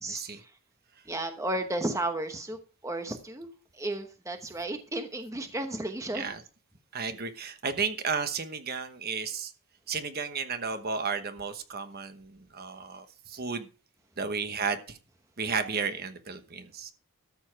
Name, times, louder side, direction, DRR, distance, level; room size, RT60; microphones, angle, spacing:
voice 1, 0.1-0.4 6.1-6.4 6.9-9.5 9.9-13.7 14.2-15.0 15.4-16.9, right 5 dB, 45° right, 9 dB, 1.1 m, -33 dB
voice 2, 1.1-3.5 3.8-6.3, right 1 dB, 15° right, 6 dB, 1.0 m, -33 dB
13.5 x 7.2 x 4.7 m, 0.36 s
head